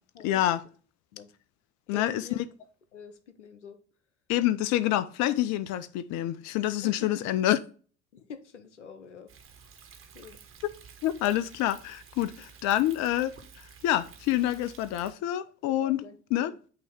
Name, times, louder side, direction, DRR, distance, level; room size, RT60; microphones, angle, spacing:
voice 1, 0.2-0.6 1.9-2.3 4.3-7.6 11.0-16.0 16.3-16.5, left 13 dB, 50° left, 0.5 m, -27 dB
voice 2, 1.9-2.4 2.9-3.8 6.8-7.2 8.1-9.3 10.1-10.4 15.7-16.6, left 6 dB, 85° left, 0.8 m, -46 dB
Thunder, 9.3-15.1, right 6 dB, 35° right, 1.5 m, -52 dB
8.6 x 2.9 x 5.5 m
figure-of-eight pair, 60°, 35 cm